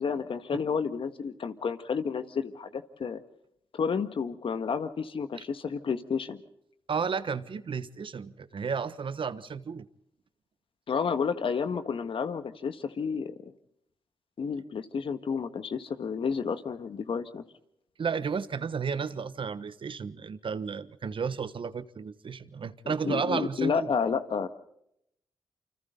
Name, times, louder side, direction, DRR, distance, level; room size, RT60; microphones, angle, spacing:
voice 1, 0.0-3.2 3.7-6.4 10.9-13.5 14.4-17.4 22.9-24.5, left 6 dB, 70° left, 1.7 m, -31 dB
voice 2, 6.9-9.9 18.0-23.9, right 6 dB, 60° right, 1.2 m, -33 dB
28.0 x 25.5 x 4.0 m
supercardioid pair, 40°, 10 cm